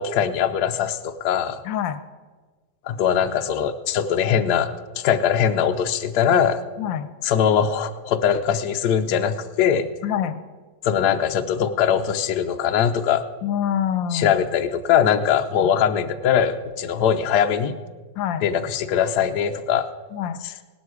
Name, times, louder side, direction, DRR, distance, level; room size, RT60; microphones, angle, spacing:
voice 1, 0.0-1.6 2.9-6.6 7.2-9.9 10.8-13.2 14.1-17.7 18.4-19.9, left 8 dB, 65° left, 7 dB, 1.2 m, -21 dB
voice 2, 1.6-2.0 6.8-7.1 10.0-10.4 13.4-14.4 15.6-15.7 18.2-18.4 20.1-20.4, left 9 dB, 90° left, 12 dB, 1.4 m, -25 dB
18.0 x 11.5 x 4.8 m, 1.4 s
omnidirectional pair, 2.0 m